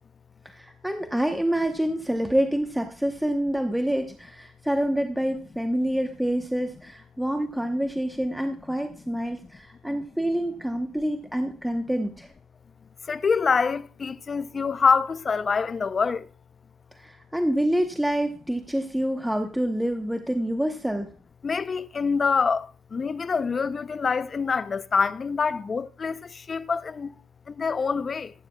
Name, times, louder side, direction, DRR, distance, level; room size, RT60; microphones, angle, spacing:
voice 1, 0.4-12.3 17.0-21.1, right 1 dB, 5° right, 0.9 m, -27 dB
voice 2, 13.0-16.3 21.4-27.1 27.5-28.3, left 5 dB, 40° left, 0.5 m, -25 dB
14.5 x 11.0 x 2.3 m
cardioid pair, 90°, 0 cm